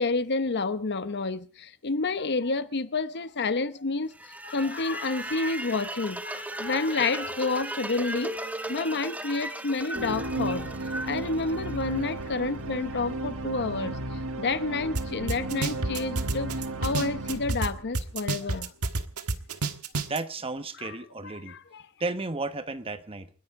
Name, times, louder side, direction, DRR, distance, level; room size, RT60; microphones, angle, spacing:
voice 1, 0.0-4.1 4.4-8.4 8.7-10.7 11.0-14.0 14.4-16.5 16.8-18.7 20.8-20.9 21.2-21.9, left 3 dB, 50° left, 0.9 m, -29 dB
sound 1, 4.1-12.2, right 1 dB, 5° right, 1.2 m, -36 dB
sound 2, 9.9-18.4, right 2 dB, 65° right, 1.5 m, -34 dB
sound 3, 15.0-15.1 15.3-17.7 18.0-20.2, right 3 dB, 90° right, 1.5 m, -28 dB
voice 2, 20.1-21.5 22.0-23.3, right 3 dB, 25° right, 1.2 m, -33 dB
30.0 x 10.5 x 3.7 m
head